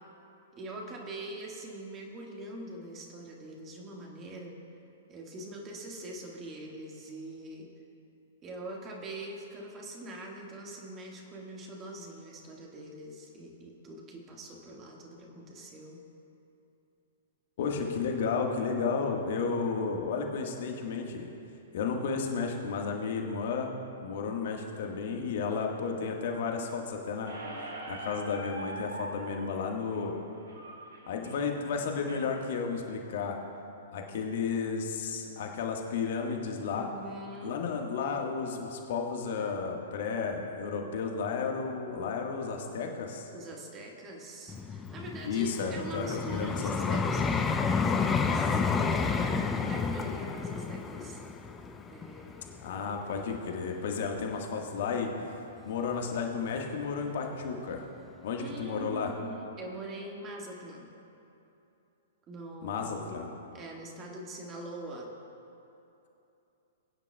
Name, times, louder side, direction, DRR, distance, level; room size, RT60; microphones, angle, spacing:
voice 1, 0.5-4.6 5.1-7.7 8.4-16.0 36.7-37.6 43.3-51.2 51.9-52.6 58.4-60.9 62.3-63.1 63.5-65.1, right 1 dB, 25° right, -1 dB, 1.7 m, -43 dB
voice 2, 17.6-21.3 21.7-23.7 24.0-27.3 27.9-30.2 31.1-33.4 33.9-36.9 37.4-43.3 45.2-47.0 52.6-55.1 55.6-57.8 58.2-59.1 62.6-63.3, left 5 dB, 55° left, 2 dB, 1.5 m, -32 dB
Squeak, 27.3-32.3, right 1 dB, 75° right, 2.9 m, -43 dB
Vehicle, 44.5-53.6 54.2-54.4, left 5 dB, 15° left, 0.6 m, -30 dB
21.0 x 9.8 x 2.3 m, 2.8 s
figure-of-eight pair, 110°, 0 cm